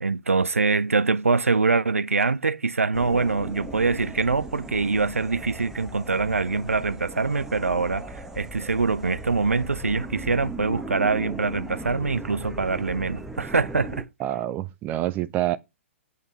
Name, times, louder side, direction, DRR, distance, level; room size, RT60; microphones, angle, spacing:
voice 1, 0.0-14.1, right 4 dB, 75° right, 0.5 m, -24 dB
sound 1, 2.9-14.0, right 1 dB, 5° right, 1.0 m, -38 dB
voice 2, 14.2-15.6, right 14 dB, 25° right, 0.6 m, -27 dB
8.4 x 6.8 x 4.0 m
figure-of-eight pair, 115°, 7 cm